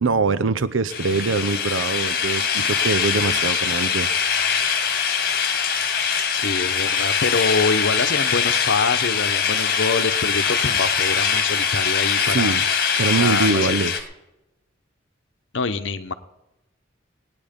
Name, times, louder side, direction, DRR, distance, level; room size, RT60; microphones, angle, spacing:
voice 1, 0.0-4.1 12.2-12.6 13.0-14.0, right 4 dB, 85° right, 15 dB, 0.7 m, -23 dB
sound 1, 0.9-14.0, left 7 dB, 50° left, 1.6 m, -22 dB
voice 2, 6.3-12.6 13.2-13.8 15.5-16.1, left 4 dB, 75° left, 11 dB, 0.9 m, -25 dB
18.5 x 9.6 x 5.2 m, 0.96 s
head